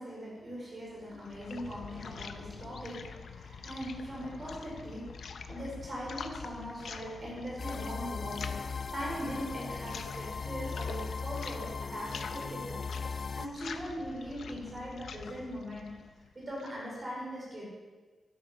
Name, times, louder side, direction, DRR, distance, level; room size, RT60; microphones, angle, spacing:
voice 1, 0.0-12.9 13.3-16.1 16.3-17.7, equal, 35° right, -4 dB, 4.7 m, -40 dB
sound 1, 0.8-16.9, left 6 dB, 80° left, 0.7 m, -46 dB
sound 2, 7.6-13.5, left 5 dB, 40° left, 0.3 m, -38 dB
12.0 x 11.0 x 5.1 m, 1.3 s
wide cardioid pair, 160°, 0 cm